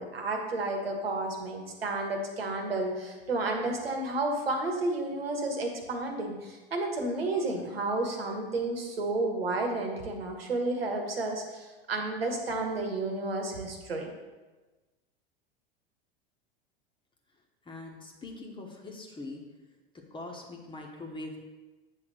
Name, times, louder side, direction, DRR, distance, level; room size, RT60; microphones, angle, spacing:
voice 1, 0.0-14.1, right 2 dB, 80° right, 2 dB, 1.3 m, -31 dB
voice 2, 17.6-19.4 20.1-21.4, left 2 dB, 15° left, 1 dB, 1.3 m, -42 dB
8.2 x 3.5 x 6.3 m, 1.2 s
figure-of-eight pair, 85°, 30 cm